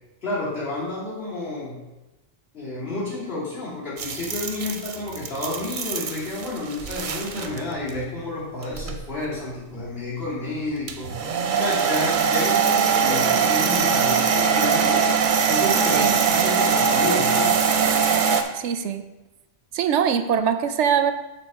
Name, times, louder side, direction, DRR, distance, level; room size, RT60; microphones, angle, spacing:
voice 1, 0.2-1.8 2.5-11.1 11.6-17.7, left 2 dB, 55° left, -8 dB, 3.0 m, -30 dB
sound 1, 4.0-7.6 7.9-8.0 8.6-9.0 10.9-18.4, right 6 dB, 50° right, 0.7 m, -22 dB
voice 2, 18.5-19.0 19.7-21.1, right 8 dB, 80° right, 10 dB, 0.9 m, -22 dB
6.8 x 4.2 x 6.0 m, 1.1 s
omnidirectional pair, 1.2 m